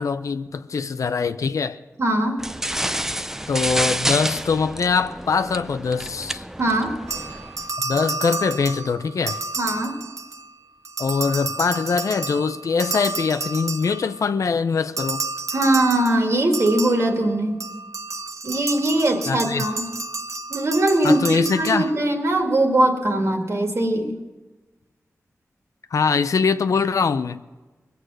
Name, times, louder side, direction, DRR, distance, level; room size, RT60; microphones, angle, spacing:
voice 1, 0.0-1.8 3.5-6.4 7.8-9.4 11.0-15.2 19.3-19.6 21.0-21.9 25.9-27.4, left 5 dB, 80° left, 0.6 m, -23 dB
voice 2, 2.0-2.4 6.6-7.0 9.6-10.0 15.5-17.6 18.4-19.8 20.5-24.2, right 1 dB, 60° right, 2.1 m, -21 dB
sound 1, 2.4-7.7, right 1 dB, 10° right, 0.4 m, -28 dB
sound 2, 7.1-10.5 10.8-14.3 15.0-22.2, right 3 dB, 75° right, 0.7 m, -31 dB
21.0 x 8.2 x 6.3 m
wide cardioid pair, 80°, 5 cm